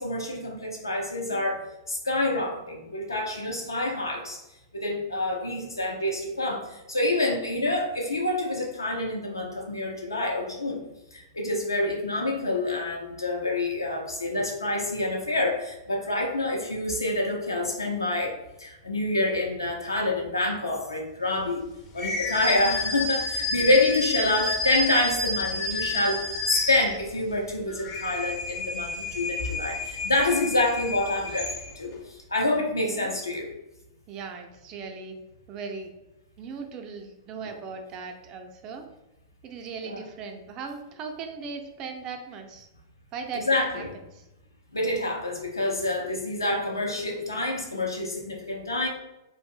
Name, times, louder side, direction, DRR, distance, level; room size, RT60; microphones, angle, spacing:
voice 1, 0.0-1.6 1.9-4.4 4.7-10.8 11.1-18.3 18.6-21.6 21.9-31.5 31.8-33.5 39.8-40.0 43.3-43.9 44.7-48.9, left 2 dB, 80° left, 0 dB, 0.6 m, -27 dB
sound 1, 22.0-27.2 27.7-31.9, left 3 dB, 35° left, 0.5 m, -30 dB
voice 2, 34.1-35.2 35.5-35.9 36.4-38.8 39.4-42.7 43.1-44.3, right 5 dB, 30° right, 4 dB, 0.4 m, -38 dB
2.4 x 2.0 x 3.5 m, 0.94 s
figure-of-eight pair, 105°, 2 cm